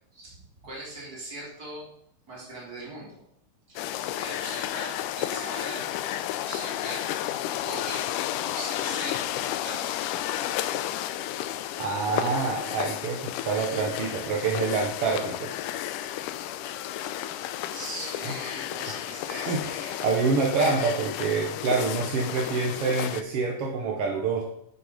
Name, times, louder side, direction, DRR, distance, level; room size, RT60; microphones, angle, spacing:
voice 1, 0.1-1.9 2.3-3.2 3.7-3.9 4.1-5.8 6.4-7.0 7.3-8.1 8.4-9.8 17.7-19.7, right 2 dB, 25° right, -4 dB, 3.4 m, -40 dB
sound 1, 3.8-23.2, left 12 dB, 80° left, 2.0 m, -32 dB
voice 2, 11.8-15.5 19.5-24.4, right 4 dB, 65° right, 0 dB, 1.6 m, -27 dB
10.5 x 7.3 x 5.1 m, 0.73 s
omnidirectional pair, 3.9 m